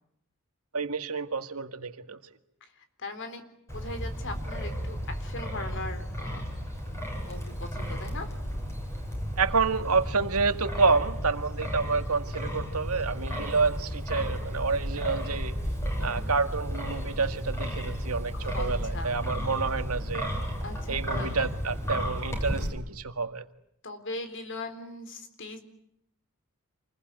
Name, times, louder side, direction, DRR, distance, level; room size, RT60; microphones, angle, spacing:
voice 1, 0.7-2.2 9.4-15.5 16.0-20.3 20.9-23.4, right 4 dB, 90° right, 9 dB, 1.9 m, -28 dB
voice 2, 2.6-3.4 3.7-6.5 7.3-8.4 16.0-16.3 18.3-19.1 20.6-21.4 23.8-25.6, left 2 dB, 60° left, 9 dB, 3.9 m, -40 dB
Wind, 3.7-22.7, equal, 15° left, 7.7 m, -33 dB
28.0 x 21.0 x 9.5 m, 0.75 s
head